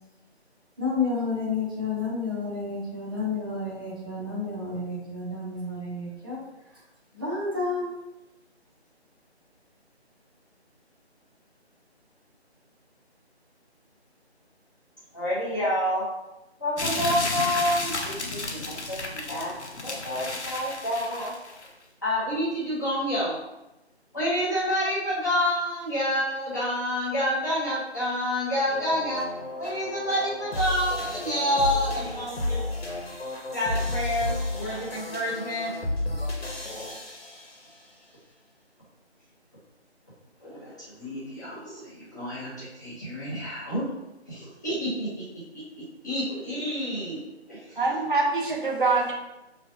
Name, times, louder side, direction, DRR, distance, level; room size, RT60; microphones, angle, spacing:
voice 1, 0.8-6.4 7.1-7.9, left 3 dB, 20° right, -6 dB, 0.9 m, -30 dB
voice 2, 15.1-16.1 16.6-19.5 19.8-21.3 22.0-23.4 24.1-29.3 29.6-32.6 33.5-35.7 40.4-43.8 44.3-45.2 45.5-47.2 47.5-47.7, equal, 15° left, -10 dB, 0.9 m, -28 dB
sound 1, 16.8-21.7, left 2 dB, 85° left, 1.0 m, -32 dB
sound 2, 28.7-37.9, left 2 dB, 60° left, 1.2 m, -32 dB
voice 3, 47.8-49.1, right 3 dB, 50° right, -1 dB, 0.7 m, -24 dB
5.6 x 3.2 x 2.8 m, 0.95 s
figure-of-eight pair, 165°, 33 cm